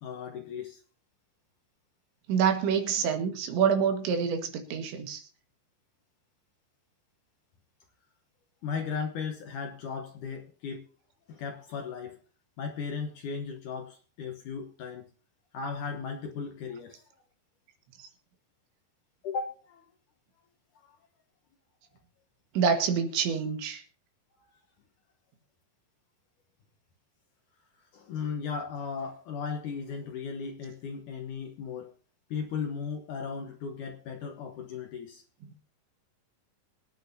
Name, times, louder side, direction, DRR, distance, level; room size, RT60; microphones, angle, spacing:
voice 1, 0.0-0.8 8.6-10.9 11.3-12.2 12.6-15.1 15.5-17.0 19.2-19.9 20.8-21.0 27.9-31.9 32.3-35.2, left 5 dB, 80° left, 4 dB, 1.8 m, -36 dB
voice 2, 2.3-5.2 22.6-23.8, right 7 dB, 75° right, 6 dB, 4.0 m, -27 dB
25.0 x 9.0 x 2.7 m, 0.40 s
omnidirectional pair, 5.3 m